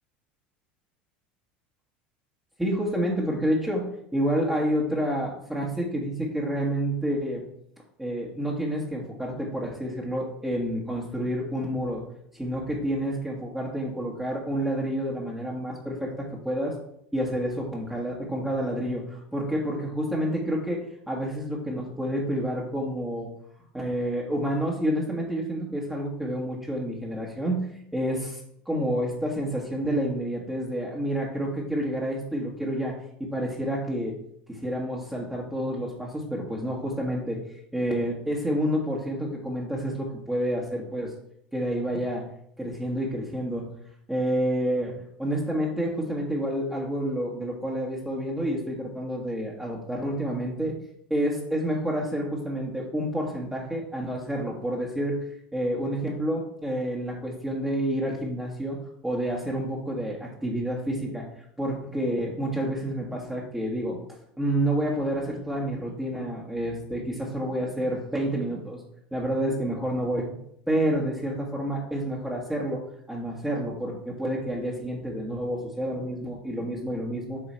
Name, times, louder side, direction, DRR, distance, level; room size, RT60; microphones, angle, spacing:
voice 1, 2.6-7.4 8.0-12.0 12.3-16.8 17.1-23.3 23.7-27.7 27.9-34.1 34.5-37.4 37.7-41.1 41.5-42.3 42.6-43.7 44.1-50.7 51.1-61.3 61.6-64.0 64.4-68.8 69.1-70.4 70.7-77.4, equal, 5° right, -4 dB, 1.5 m, -29 dB
7.5 x 3.9 x 4.4 m, 0.71 s
hypercardioid pair, 95°, 5 cm